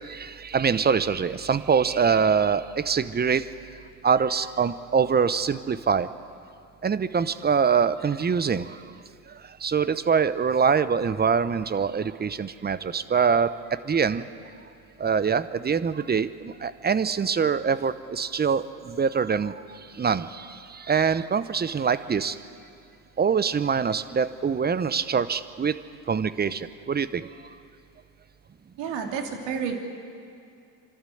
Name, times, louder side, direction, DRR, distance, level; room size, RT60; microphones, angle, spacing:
voice 1, 0.1-3.4 4.0-6.1 6.8-8.7 9.6-14.2 15.0-19.5 20.0-20.5 20.7-22.4 23.2-25.8 26.1-27.3, right 6 dB, 20° right, 15 dB, 0.8 m, -24 dB
voice 2, 28.8-29.8, right 6 dB, 65° right, 3 dB, 2.9 m, -30 dB
25.5 x 13.0 x 7.9 m, 2.4 s
hypercardioid pair, 75°, 47 cm